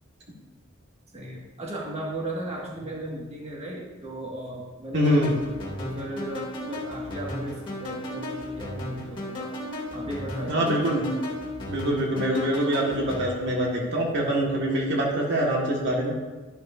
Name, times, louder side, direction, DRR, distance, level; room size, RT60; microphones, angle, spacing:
voice 1, 1.1-5.2 5.5-11.1 11.7-11.9, right 1 dB, 35° right, -3 dB, 1.9 m, -37 dB
voice 2, 4.9-5.3 10.5-11.1 11.7-16.1, equal, 60° right, -2 dB, 1.8 m, -24 dB
sound 1, 5.0-13.3, left 1 dB, 25° left, 2.6 m, -35 dB
11.5 x 11.5 x 2.7 m, 1.3 s
head